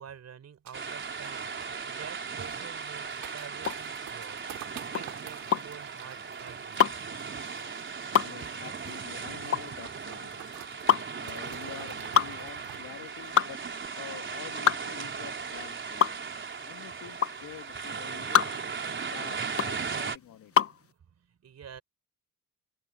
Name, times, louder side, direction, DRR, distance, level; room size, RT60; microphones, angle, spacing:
voice 1, 0.0-6.8 20.6-21.8, right 8 dB, 50° right, 4.7 m, -49 dB
sound 1, 0.7-20.2, right 5 dB, 35° right, 4.3 m, -37 dB
sound 2, 0.7-14.5 14.7-14.8 15.1-15.4 15.8-15.9, right 13 dB, 90° right, 6.1 m, -50 dB
sound 3, 3.6-20.8, left 8 dB, 45° left, 1.2 m, -28 dB
voice 2, 8.2-10.6 11.2-13.6 13.9-16.2 16.6-18.5 18.9-20.5, left 11 dB, 80° left, 2.9 m, -47 dB
cardioid pair, 110°, 32 cm